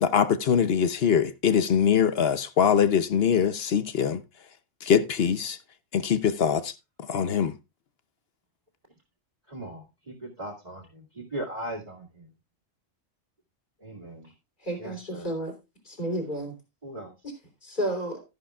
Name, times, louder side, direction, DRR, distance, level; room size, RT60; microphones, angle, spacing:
voice 1, 0.0-4.2 4.8-5.6 5.9-6.7 7.1-7.6, left 7 dB, 55° left, 0.9 m, -23 dB
voice 2, 9.5-12.2 13.8-14.3 14.8-15.3 16.8-17.1, right 1 dB, 30° right, 2.2 m, -38 dB
voice 3, 14.6-15.6 15.9-16.5 17.6-18.2, right 1 dB, 40° left, 3.6 m, -31 dB
13.0 x 11.0 x 2.3 m
omnidirectional pair, 1.3 m